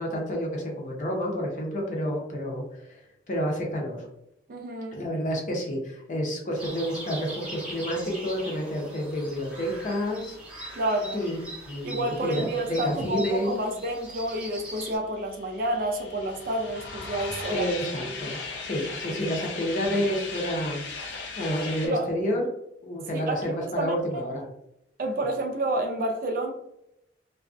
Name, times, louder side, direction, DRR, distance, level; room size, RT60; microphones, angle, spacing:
voice 1, 0.0-4.1 4.9-10.4 11.1-11.4 11.7-13.5 17.5-22.5 22.8-24.5, equal, 40° left, -1 dB, 0.6 m, -30 dB
voice 2, 4.5-5.0 10.7-11.2 11.8-17.7 18.0-18.2 19.1-19.2 21.8-22.1 23.1-24.2 25.0-26.5, right 1 dB, 50° right, 2 dB, 0.4 m, -29 dB
sound 1, 6.6-15.0, right 1 dB, 5° right, 0.6 m, -41 dB
sound 2, 14.7-21.9, left 4 dB, 90° left, 0.6 m, -37 dB
2.3 x 2.1 x 2.5 m, 0.80 s
head